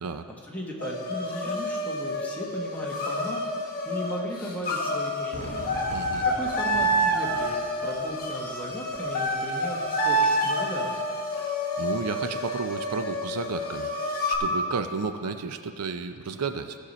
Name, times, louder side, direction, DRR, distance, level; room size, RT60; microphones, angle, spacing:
voice 1, 0.5-5.7 6.0-10.9, left 1 dB, 5° left, -3 dB, 1.5 m, -36 dB
sound 1, 0.8-14.4, equal, 45° left, 1.4 m, -28 dB
Fireworks, 5.3-10.4, right 1 dB, 35° right, 1.0 m, -44 dB
voice 2, 5.9-6.3 11.4-16.8, right 4 dB, 90° right, 8 dB, 0.6 m, -33 dB
16.5 x 6.6 x 4.2 m, 2.2 s
head